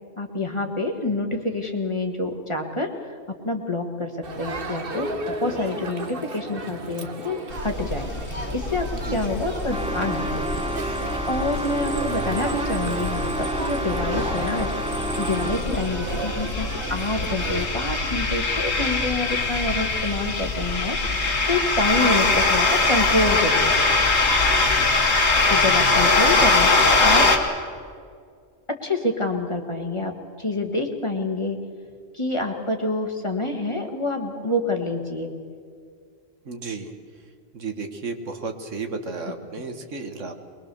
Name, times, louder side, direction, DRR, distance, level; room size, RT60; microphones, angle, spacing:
voice 1, 0.2-3.1 3.4-4.1 4.4-8.1 8.5-10.6 11.0-14.7 15.2-21.0 21.5-23.7 25.5-27.3 28.7-31.6 32.1-35.3 39.2-39.6, left 2 dB, 25° left, 3 dB, 1.7 m, -27 dB
Crowd, 4.2-17.7, right 3 dB, 45° right, 1.4 m, -34 dB
sound 1, 7.5-27.4, left 3 dB, 85° left, 2.3 m, -23 dB
voice 2, 8.9-9.5 22.2-22.3 36.5-36.9 37.5-40.3, right 4 dB, 70° right, 6 dB, 1.8 m, -33 dB
sound 2, 9.7-15.8, right 1 dB, 5° right, 0.7 m, -30 dB
22.5 x 21.5 x 6.9 m, 2.1 s
omnidirectional pair, 1.3 m